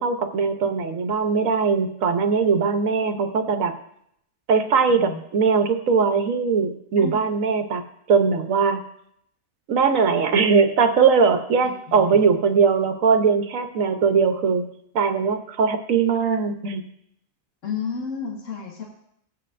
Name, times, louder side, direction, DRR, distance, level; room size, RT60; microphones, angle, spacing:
voice 1, 0.0-3.7 4.5-7.8 8.1-8.8 9.7-14.6 14.9-16.8, right 5 dB, 75° right, 7 dB, 1.3 m, -20 dB
voice 2, 4.9-5.2 7.0-7.3 11.9-12.2 17.6-18.8, left 6 dB, 65° left, -2 dB, 1.8 m, -31 dB
17.0 x 8.7 x 2.6 m, 0.73 s
omnidirectional pair, 1.4 m